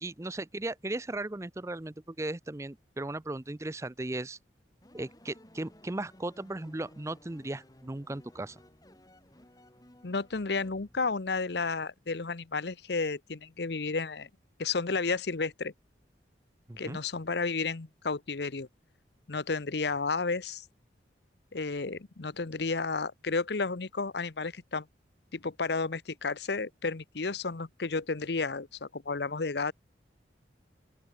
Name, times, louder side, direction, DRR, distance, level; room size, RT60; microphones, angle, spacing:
voice 1, 0.0-4.4 4.9-8.6 16.7-17.0, right 2 dB, 15° right, 0.5 m, -37 dB
sound 1, 4.8-11.5, left 1 dB, 20° left, 3.1 m, -57 dB
voice 2, 10.0-14.3 14.6-15.7 16.8-18.7 19.3-20.6 21.5-24.9 25.3-29.7, left 4 dB, 65° left, 0.8 m, -32 dB
open air
head